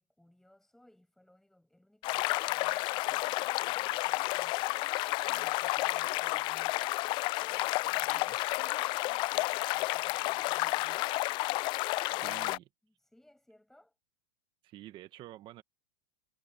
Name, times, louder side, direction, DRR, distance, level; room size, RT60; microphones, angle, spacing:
voice 1, 0.0-4.6 5.2-6.9 7.4-11.3 12.1-14.0, left 1 dB, ahead, 7.6 m, -63 dB
sound 1, 2.0-12.6, left 21 dB, 35° left, 0.3 m, -31 dB
voice 2, 8.0-8.4 12.2-12.7 14.6-15.6, right 14 dB, 35° right, 1.7 m, -49 dB
supercardioid pair, 135°, 14 cm